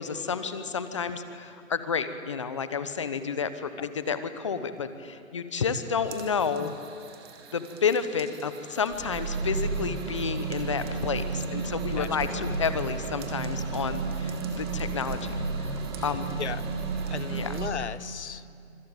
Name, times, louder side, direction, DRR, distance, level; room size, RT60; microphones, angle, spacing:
voice 1, 0.0-6.7 7.5-16.3 17.3-17.5, left 6 dB, 25° left, 11 dB, 1.0 m, -30 dB
sound 1, 6.1-17.7, right 4 dB, 20° right, 1.7 m, -33 dB
voice 2, 11.6-12.1 12.4-12.5 16.0-16.6 17.1-18.6, left 6 dB, 55° left, 16 dB, 1.0 m, -37 dB
26.0 x 25.5 x 8.9 m, 2.5 s
hypercardioid pair, 165°, 41 cm